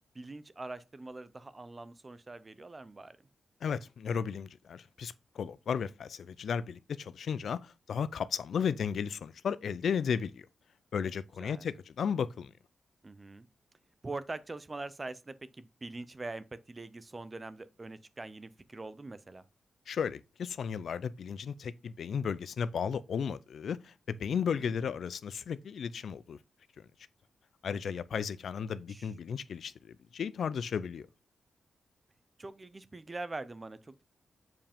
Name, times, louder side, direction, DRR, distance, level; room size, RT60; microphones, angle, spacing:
voice 1, 0.1-3.2 11.4-11.7 13.0-13.5 14.0-19.4 24.3-24.8 28.7-29.1 32.4-34.0, right 2 dB, 25° right, 0.6 m, -43 dB
voice 2, 3.6-10.5 10.9-12.5 19.9-26.4 27.6-31.1, left 7 dB, 70° left, 0.4 m, -34 dB
7.6 x 4.7 x 3.5 m
wide cardioid pair, 135°, 0 cm